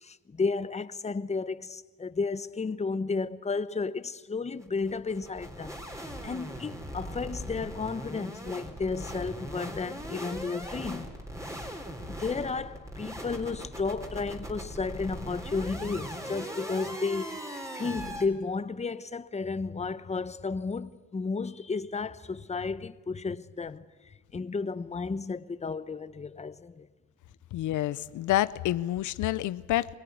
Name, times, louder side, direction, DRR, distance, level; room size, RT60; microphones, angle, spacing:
voice 1, 0.0-5.8 6.2-11.1 11.5-11.7 12.1-17.5 17.7-26.9, left 4 dB, 20° left, 0.9 m, -33 dB
sound 1, 4.6-18.3, equal, 10° right, 3.8 m, -39 dB
voice 2, 27.5-30.0, left 14 dB, 80° left, 0.7 m, -28 dB
24.0 x 19.0 x 9.4 m
cardioid pair, 90°, 30 cm